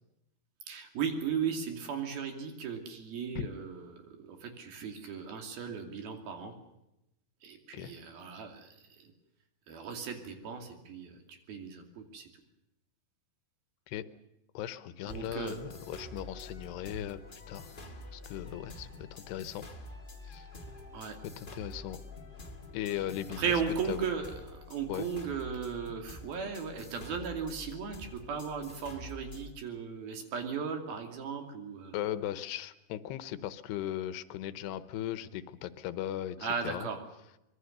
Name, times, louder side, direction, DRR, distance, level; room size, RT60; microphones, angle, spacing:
voice 1, 0.7-6.5 7.4-9.1 9.7-12.3 15.1-15.6 20.9-21.2 23.4-31.9 36.4-37.0, right 6 dB, 65° right, 4 dB, 4.4 m, -36 dB
voice 2, 14.5-17.8 18.1-19.7 20.2-20.5 21.4-22.0 22.7-23.5 23.9-24.1 24.9-25.1 31.9-36.9, left 12 dB, 80° left, 13 dB, 3.0 m, -38 dB
sound 1, 15.1-29.5, left 2 dB, 30° left, 0.9 m, -47 dB
25.0 x 22.0 x 6.7 m, 0.87 s
omnidirectional pair, 4.8 m